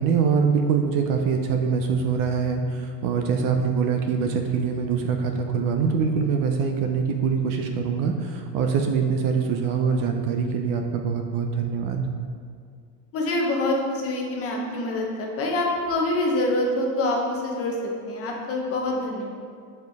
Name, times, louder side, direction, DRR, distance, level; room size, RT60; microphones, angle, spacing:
voice 1, 0.0-12.1, right 6 dB, 50° right, 4 dB, 0.5 m, -24 dB
voice 2, 13.1-17.7 18.1-19.3, left 1 dB, 30° left, -1 dB, 0.9 m, -25 dB
6.5 x 4.3 x 3.5 m, 2.3 s
cardioid pair, 160°, 44 cm